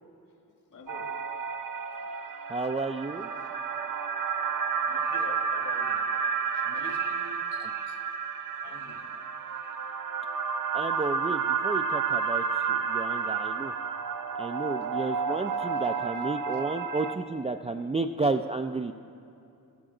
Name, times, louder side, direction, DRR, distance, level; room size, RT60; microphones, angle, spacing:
voice 1, 0.7-1.1 1.4-1.5 2.0-2.2 3.3-3.5 4.2-4.4 4.8-8.0 8.5-9.1 13.5-13.9 15.2-16.0 16.5-16.6, left 3 dB, 50° left, 4 dB, 1.4 m, -49 dB
sound 1, 0.9-17.2, right 6 dB, 55° right, 0.8 m, -31 dB
voice 2, 2.5-3.3 7.6-7.7 10.7-13.7 14.4-18.9, right 3 dB, 20° right, 6 dB, 0.3 m, -32 dB
14.0 x 14.0 x 3.8 m, 2.6 s
wide cardioid pair, 100°, 38 cm